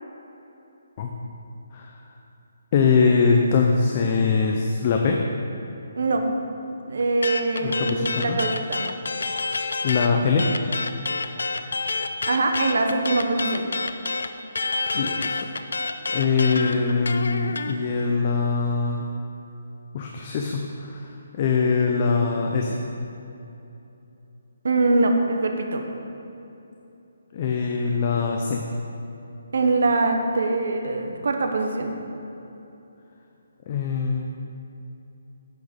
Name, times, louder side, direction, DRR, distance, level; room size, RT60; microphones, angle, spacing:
voice 1, 2.7-5.2 7.6-8.4 9.8-10.5 14.9-15.3 15.7-19.0 19.9-21.1 21.3-22.8 27.3-28.6 33.7-34.3, left 5 dB, 25° left, 1 dB, 0.5 m, -22 dB
voice 2, 6.9-8.9 12.3-13.7 24.6-25.8 29.5-31.9, right 3 dB, 60° right, 4 dB, 1.0 m, -23 dB
sound 1, 7.2-10.1 10.4-17.7, left 3 dB, 75° left, 0.5 m, -28 dB
8.3 x 6.2 x 5.2 m, 2.9 s
hypercardioid pair, 175°, 0 cm